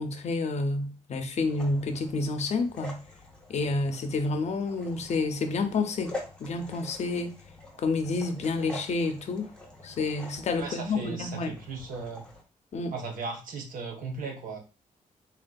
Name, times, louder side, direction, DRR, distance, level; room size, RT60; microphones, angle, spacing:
voice 1, 0.0-3.0 3.5-6.1 6.4-7.4 7.8-9.5 9.8-11.5 12.7-12.9, left 3 dB, 55° left, 0.5 m, -29 dB
sound 1, 1.4-12.4, left 2 dB, 5° left, 0.7 m, -45 dB
voice 2, 10.6-12.2 12.9-14.6, right 4 dB, 75° right, 0.8 m, -37 dB
3.4 x 2.5 x 2.2 m
cardioid pair, 120°, 14 cm